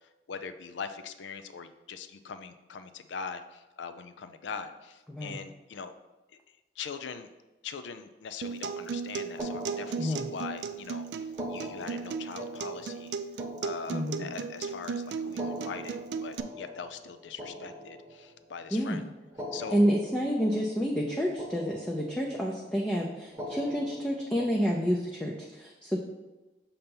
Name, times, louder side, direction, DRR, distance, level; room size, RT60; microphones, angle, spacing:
voice 1, 0.3-5.9 6.8-7.3 7.6-13.1 13.6-19.0 19.5-19.8, left 6 dB, 85° left, 10 dB, 0.4 m, -41 dB
voice 2, 5.1-5.4 10.0-10.3 13.9-14.3 18.7-19.0 19.7-26.0, equal, 5° left, -3 dB, 0.5 m, -29 dB
Acoustic guitar, 8.4-16.4, right 5 dB, 70° right, 0.3 m, -36 dB
sound 1, 9.4-10.6 11.3-14.6 15.2-18.5 19.2-21.1 21.4-22.4 23.3-25.1, equal, 15° right, 0.9 m, -43 dB
6.6 x 2.9 x 5.3 m, 1.1 s
head